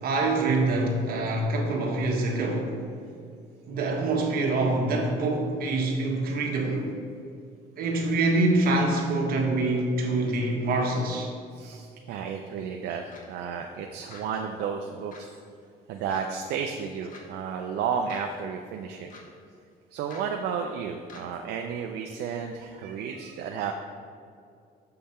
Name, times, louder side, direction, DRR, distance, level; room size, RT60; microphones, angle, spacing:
voice 1, 0.0-2.8 3.7-6.9 7.8-11.3, right 2 dB, 60° right, 0 dB, 1.4 m, -25 dB
voice 2, 11.5-15.3 15.9-19.1 19.9-23.7, right 6 dB, 75° right, 3 dB, 0.5 m, -32 dB
sound 1, 13.1-13.3 14.1-14.2 15.1-15.3 16.1-16.2 17.1-17.2 18.1-18.2 19.1-19.2 20.1-20.2 21.1-21.2, left 3 dB, 55° left, 1.2 m, -46 dB
6.7 x 5.5 x 4.3 m, 2.4 s
cardioid pair, 110°, 17 cm